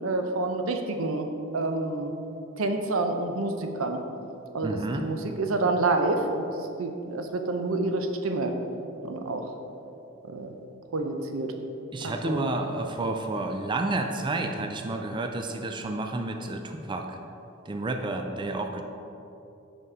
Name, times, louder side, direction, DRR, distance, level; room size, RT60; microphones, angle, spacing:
voice 1, 0.0-2.1 2.6-4.0 4.5-8.5 9.0-9.5 10.3-10.5 10.9-11.5 12.0-12.5, right 2 dB, 85° right, 5 dB, 0.6 m, -28 dB
voice 2, 4.6-5.0 11.9-17.2 17.7-18.8, right 2 dB, 25° right, 5 dB, 0.3 m, -30 dB
5.5 x 5.4 x 4.8 m, 2.8 s
head